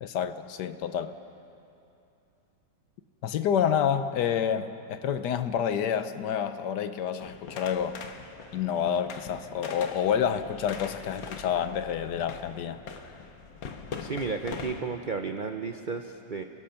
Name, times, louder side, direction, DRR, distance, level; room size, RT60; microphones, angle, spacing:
voice 1, 0.0-1.1 3.2-8.0 8.5-12.8, left 8 dB, 70° left, 1.3 m, -28 dB
sound 1, 7.2-14.8, left 5 dB, 85° left, 1.9 m, -42 dB
voice 2, 14.0-16.4, right 4 dB, 60° right, 0.5 m, -33 dB
29.5 x 17.5 x 5.8 m
omnidirectional pair, 2.0 m